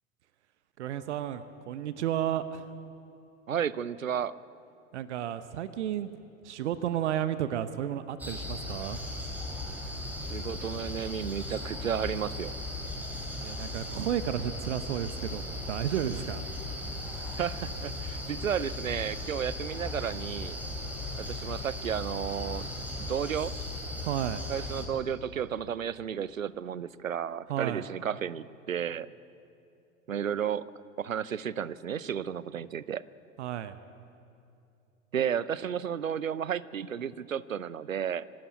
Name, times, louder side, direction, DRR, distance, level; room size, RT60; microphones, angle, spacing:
voice 1, 0.8-2.6 4.9-6.1 6.4-9.0 13.4-16.4 24.0-24.5 27.5-27.8 33.4-33.8, right 11 dB, 60° right, 13 dB, 0.9 m, -32 dB
voice 2, 3.5-4.3 10.3-12.5 17.4-20.6 21.2-22.7 23.1-23.6 24.5-29.1 30.1-30.7 31.0-33.0 35.1-38.2, right 8 dB, 85° right, 19 dB, 0.7 m, -33 dB
sound 1, 8.2-24.9, left 1 dB, 5° right, 3.8 m, -37 dB
24.5 x 12.5 x 9.4 m, 2.7 s
figure-of-eight pair, 90°, 39 cm